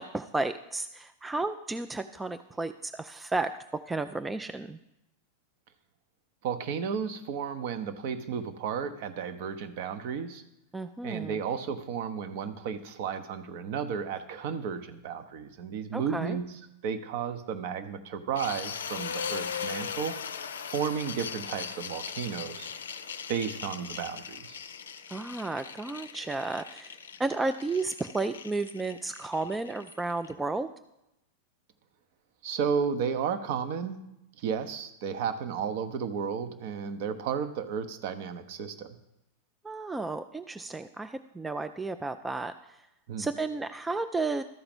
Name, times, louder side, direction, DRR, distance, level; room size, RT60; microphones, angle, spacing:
voice 1, 0.0-3.5 3.9-4.8 10.7-11.4 15.9-16.4 25.1-30.7 39.6-42.8 43.2-44.4, right 3 dB, 10° right, 9 dB, 0.4 m, -33 dB
voice 2, 6.4-10.4 11.0-20.1 20.7-22.7 23.3-24.6 32.4-34.0 34.4-39.0 43.1-43.3, right 7 dB, 50° right, 9 dB, 0.8 m, -33 dB
sound 1, 18.3-30.3, left 7 dB, 65° left, 0.5 m, -39 dB
13.0 x 4.8 x 5.2 m, 0.88 s
figure-of-eight pair, 90°, 0 cm